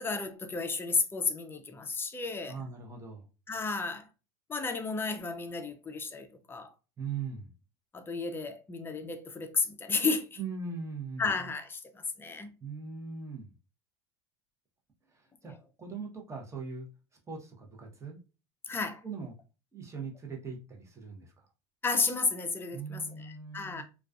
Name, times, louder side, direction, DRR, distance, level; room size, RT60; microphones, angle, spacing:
voice 1, 0.0-2.5 3.5-4.1 4.5-6.7 7.9-10.4 11.2-12.5 18.7-19.0 21.8-23.8, left 4 dB, 15° left, 0.4 m, -33 dB
voice 2, 2.5-3.3 7.0-7.5 10.4-11.2 12.6-13.5 15.1-15.5 15.8-16.9 17.3-18.2 19.0-19.3 19.7-21.5 22.7-23.8, right 5 dB, 20° right, 0.7 m, -40 dB
2.3 x 2.3 x 2.3 m
hypercardioid pair, 100°, 15 cm